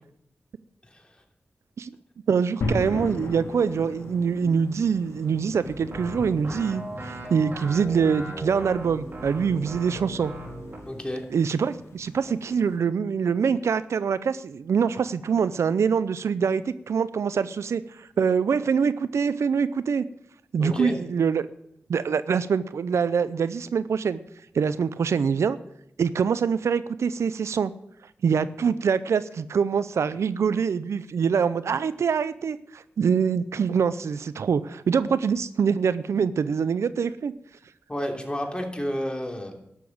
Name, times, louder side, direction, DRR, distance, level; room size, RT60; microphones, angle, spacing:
voice 1, 2.3-10.3 11.3-20.0 20.5-21.4 21.9-24.2 24.5-25.6 26.0-27.7 28.2-37.3, right 6 dB, 80° right, 15 dB, 0.5 m, -24 dB
sound 1, 2.6-12.8, left 2 dB, 85° left, 2.0 m, -38 dB
sound 2, 5.6-10.9, right 1 dB, 45° right, 4.3 m, -38 dB
voice 2, 10.9-11.2 20.6-21.0 37.9-39.5, equal, 20° left, 2 dB, 3.1 m, -31 dB
12.0 x 7.0 x 8.7 m, 0.76 s
cardioid pair, 40°, 5 cm